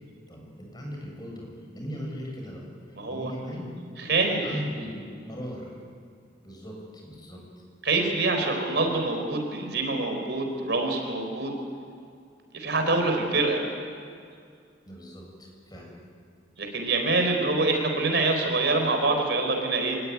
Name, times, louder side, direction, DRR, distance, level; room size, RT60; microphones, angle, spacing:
voice 1, 0.3-1.5 1.7-2.6 2.9-3.7 4.4-5.7 6.4-7.6 14.9-16.0 17.2-17.3, equal, 20° left, -1 dB, 6.7 m, -38 dB
voice 2, 2.9-3.3 4.0-4.6 7.8-11.6 12.5-13.6 16.6-20.0, right 3 dB, 65° right, 3 dB, 4.5 m, -25 dB
26.5 x 20.5 x 9.7 m, 2.2 s
head